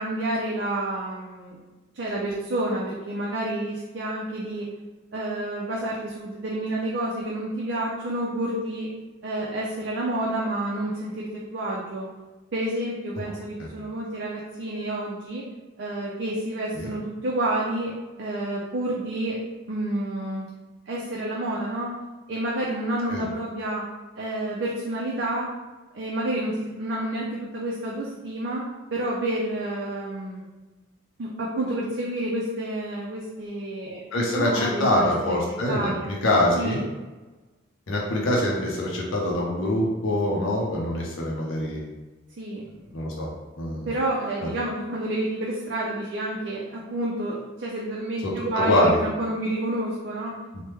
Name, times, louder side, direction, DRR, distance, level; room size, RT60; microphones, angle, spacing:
voice 1, 0.0-1.6 1.9-4.7 5.1-8.9 9.2-12.1 12.5-15.5 15.8-19.4 19.7-20.5 20.9-21.9 22.3-23.8 24.2-25.5 25.9-30.5 31.2-35.4 35.7-36.1 36.6-36.8 42.4-42.7 43.9-50.3, right 1 dB, 60° right, -4 dB, 0.4 m, -29 dB
voice 2, 34.1-36.8 37.9-41.8 42.9-43.3 43.6-43.9 48.5-49.0 50.5-50.6, left 1 dB, 85° left, -3 dB, 0.6 m, -24 dB
3.3 x 2.1 x 3.1 m, 1.2 s
head